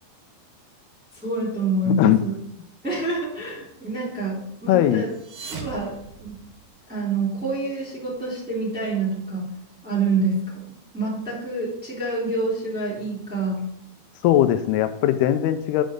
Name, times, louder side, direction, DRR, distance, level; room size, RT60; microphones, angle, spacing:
voice 1, 1.1-2.3 2.8-5.1 5.5-6.4 6.9-9.5 9.8-13.6, right 3 dB, 5° right, -6 dB, 2.6 m, -27 dB
voice 2, 4.7-5.0 14.2-15.8, left 12 dB, 85° left, 9 dB, 2.6 m, -19 dB
sound 1, 5.0-6.9, right 5 dB, 65° right, 2.0 m, -39 dB
9.6 x 5.2 x 5.1 m, 0.73 s
omnidirectional pair, 4.6 m